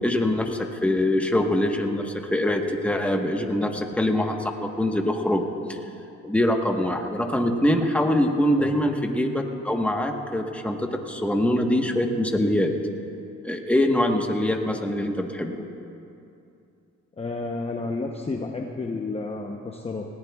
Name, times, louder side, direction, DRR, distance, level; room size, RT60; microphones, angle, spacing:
voice 1, 0.0-5.8 6.2-12.7 13.4-15.5, left 1 dB, 5° left, 2 dB, 1.2 m, -24 dB
voice 2, 17.2-20.1, left 3 dB, 20° left, 2 dB, 0.8 m, -31 dB
19.5 x 17.5 x 2.4 m, 2.6 s
cardioid pair, 90°, 30 cm